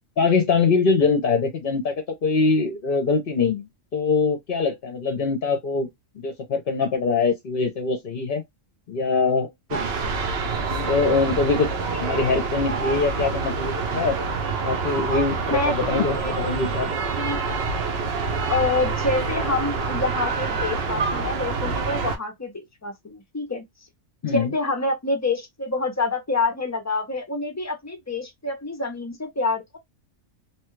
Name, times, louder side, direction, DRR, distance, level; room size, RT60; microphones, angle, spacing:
voice 1, 0.2-1.9 2.2-5.9 6.2-8.4 8.9-9.9 10.7-11.7 12.0-14.2 14.6-16.9 24.2-24.5, left 4 dB, 55° left, 0.7 m, -23 dB
sound 1, 9.7-22.2, right 4 dB, 60° right, 0.8 m, -26 dB
voice 2, 15.5-17.4 18.5-23.6 24.2-29.8, left 3 dB, 30° left, 0.3 m, -27 dB
3.0 x 2.2 x 3.1 m
omnidirectional pair, 1.4 m